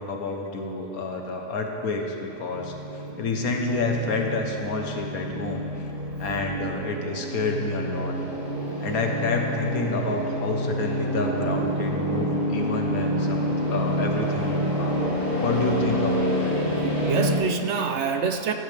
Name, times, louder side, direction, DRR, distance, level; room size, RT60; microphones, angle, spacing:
voice 1, 0.0-2.7 3.2-5.6 6.2-8.2 8.8-15.0 15.4-16.6, left 3 dB, 85° left, 2 dB, 1.6 m, -29 dB
sound 1, 2.5-17.4, equal, 35° left, 3.8 m, -28 dB
voice 2, 16.6-18.5, right 6 dB, 60° right, 6 dB, 0.9 m, -26 dB
16.5 x 13.5 x 3.4 m, 3.0 s
omnidirectional pair, 1.5 m